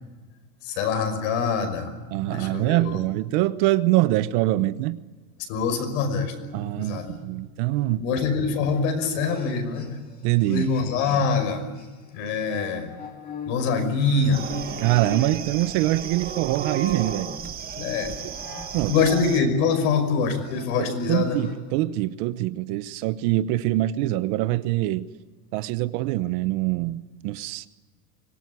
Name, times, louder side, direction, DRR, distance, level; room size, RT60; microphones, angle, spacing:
voice 1, 0.6-1.9 2.2-3.0 5.5-6.3 6.8-7.1 8.0-9.9 10.5-11.6 12.1-12.9 13.5-14.4 17.8-18.1 18.9-21.4, left 5 dB, 60° left, 5.8 m, -24 dB
voice 2, 2.1-5.0 6.5-8.0 10.2-10.7 14.8-17.3 18.7-19.1 20.8-25.1 25.5-27.7, right 16 dB, 50° right, 1.0 m, -24 dB
sound 1, 5.7-11.5 11.8-21.7, left 3 dB, 20° left, 2.9 m, -43 dB
sound 2, 14.3-19.4, right 7 dB, 20° right, 1.4 m, -34 dB
25.0 x 18.5 x 9.6 m
supercardioid pair, 160°, 43 cm